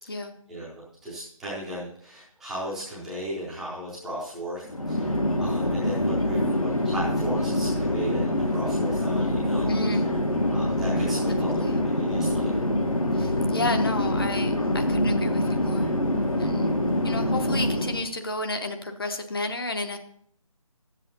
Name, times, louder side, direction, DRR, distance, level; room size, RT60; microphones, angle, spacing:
voice 1, 0.5-10.1 10.5-12.5, right 1 dB, ahead, -10 dB, 0.7 m, -36 dB
Chatter / Fixed-wing aircraft airplane, 4.7-18.1, left 1 dB, 80° left, 1.4 m, -25 dB
voice 2, 9.7-10.1 11.5-11.7 13.1-15.9 16.4-16.7 17.0-20.0, left 2 dB, 40° left, 5 dB, 0.9 m, -32 dB
10.5 x 7.5 x 4.0 m, 0.67 s
figure-of-eight pair, 155°, 18 cm